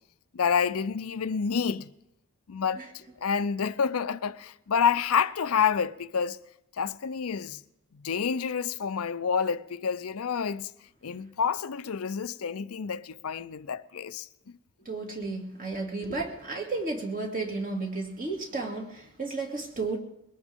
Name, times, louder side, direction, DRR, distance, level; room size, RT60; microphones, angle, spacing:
voice 1, 0.3-1.9 2.5-2.8 3.2-6.4 6.8-7.6 7.9-10.7 11.0-14.3, left 6 dB, 75° left, 0.6 m, -28 dB
voice 2, 14.8-20.0, right 3 dB, 40° right, 2.5 m, -33 dB
22.0 x 18.0 x 3.6 m
head